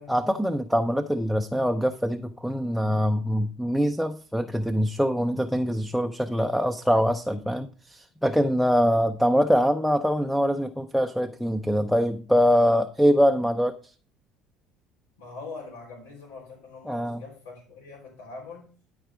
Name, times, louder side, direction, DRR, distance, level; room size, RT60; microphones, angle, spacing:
voice 1, 0.1-13.9 16.9-17.2, equal, ahead, 10 dB, 0.6 m, -24 dB
voice 2, 15.2-18.7, left 4 dB, 90° left, -5 dB, 3.4 m, -43 dB
12.5 x 4.8 x 4.9 m, 0.38 s
supercardioid pair, 95°, 0 cm